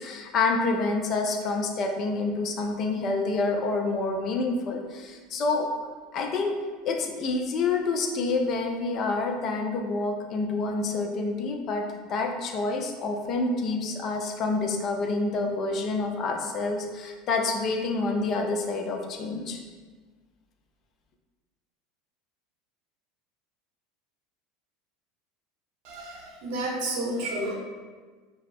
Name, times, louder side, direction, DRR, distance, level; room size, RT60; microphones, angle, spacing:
voice 1, 0.0-5.7 6.1-6.5 6.8-11.8 12.1-19.6, left 3 dB, 45° left, 2 dB, 0.4 m, -28 dB
voice 2, 25.8-27.5, right 1 dB, 60° right, -1 dB, 0.6 m, -31 dB
2.8 x 2.3 x 3.4 m, 1.4 s
hypercardioid pair, 80°, 0 cm